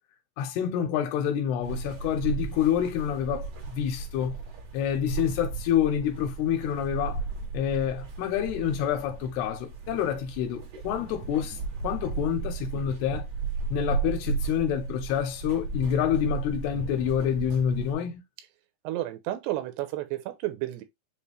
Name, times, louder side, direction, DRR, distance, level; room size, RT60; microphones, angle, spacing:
voice 1, 0.4-4.3 4.7-7.2 7.5-11.6 11.8-13.3 13.7-18.2, left 9 dB, 85° left, 2.7 m, -27 dB
sound 1, 1.6-17.9, right 5 dB, 55° right, 2.2 m, -35 dB
voice 2, 18.8-20.8, right 15 dB, 90° right, 2.8 m, -32 dB
6.9 x 2.4 x 3.1 m
omnidirectional pair, 4.7 m